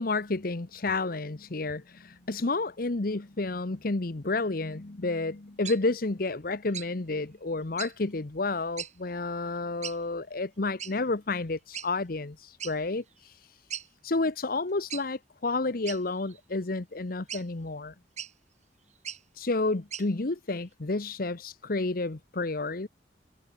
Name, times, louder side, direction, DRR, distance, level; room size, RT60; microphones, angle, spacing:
voice 1, 0.0-13.3 14.0-17.9 19.4-22.9, left 3 dB, 50° left, 1.0 m, -30 dB
sound 1, 5.6-5.8 6.7-6.9 7.8-7.9 8.8-8.9 9.8-10.0 10.8-10.9 11.7-11.9 12.6-12.8 13.2-13.3 13.7-13.9 14.9-15.1 15.9-16.4 17.3-17.4 18.2-18.3 19.0-19.2 19.9-20.1, right 9 dB, 40° right, 4.0 m, -38 dB
head